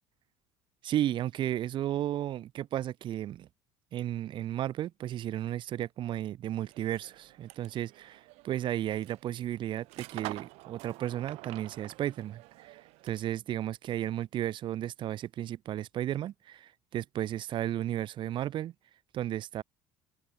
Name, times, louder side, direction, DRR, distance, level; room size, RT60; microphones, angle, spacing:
voice 1, 0.8-3.5 3.9-18.7 19.1-19.6, right 12 dB, 50° right, 0.7 m, -34 dB
sound 1, 6.6-13.4, right 23 dB, 75° right, 2.9 m, -48 dB
cardioid pair, 120°, 11 cm